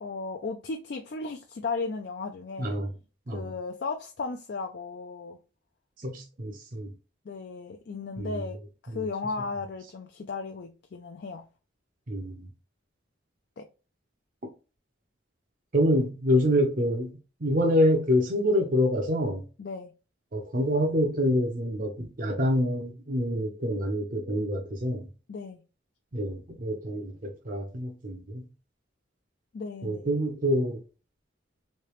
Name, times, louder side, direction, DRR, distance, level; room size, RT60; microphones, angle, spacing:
voice 1, 0.0-2.8 3.3-5.4 7.3-8.6 8.8-11.4 13.6-13.7 19.6-19.9 25.3-25.6 29.5-30.0, left 4 dB, 55° left, 0.4 m, -35 dB
voice 2, 2.6-2.9 3.3-3.4 6.0-6.9 8.2-8.4 8.9-9.0 12.1-12.5 15.7-17.1 17.4-19.4 20.3-25.1 26.1-28.5 29.8-30.8, equal, 45° right, 0.6 m, -26 dB
3.2 x 2.8 x 3.1 m
head